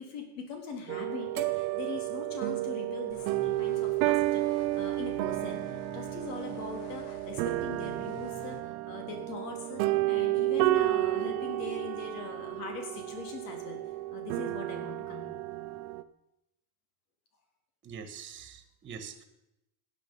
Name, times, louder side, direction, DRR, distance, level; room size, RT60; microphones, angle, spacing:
voice 1, 0.0-13.8 14.1-15.4, left 5 dB, 85° left, 3 dB, 3.8 m, -42 dB
sound 1, 0.9-16.0, right 17 dB, 50° right, 0.7 m, -31 dB
sound 2, 3.1-8.6, left 9 dB, 65° left, 1.7 m, -49 dB
voice 2, 17.8-19.2, right 6 dB, 25° right, 9 dB, 1.7 m, -44 dB
17.5 x 10.0 x 5.5 m, 0.87 s
cardioid pair, 165°, 44 cm